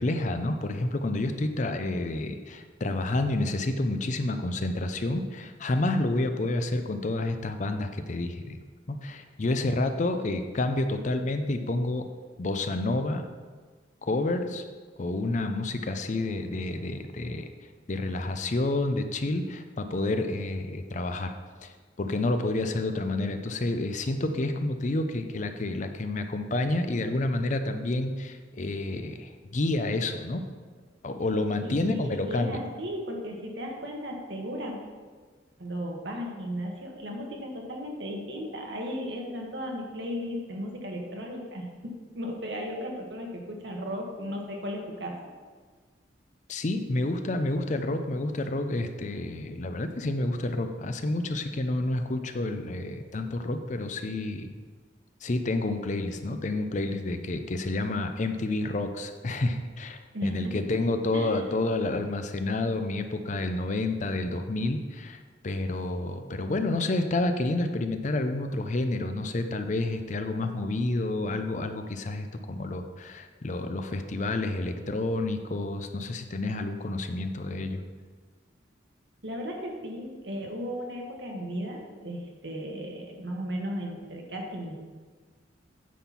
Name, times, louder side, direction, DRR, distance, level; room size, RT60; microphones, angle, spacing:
voice 1, 0.0-8.6 8.9-12.1 12.4-13.3 14.0-14.6 15.0-17.5 17.9-21.4 21.6-21.7 22.0-30.4 31.0-32.6 46.5-54.5 55.2-77.8, left 2 dB, 40° left, 7 dB, 0.5 m, -29 dB
voice 2, 31.6-34.8 35.6-41.7 42.1-45.2 60.1-61.5 79.2-84.8, equal, 65° right, 0 dB, 1.5 m, -35 dB
9.2 x 4.3 x 5.7 m, 1.5 s
head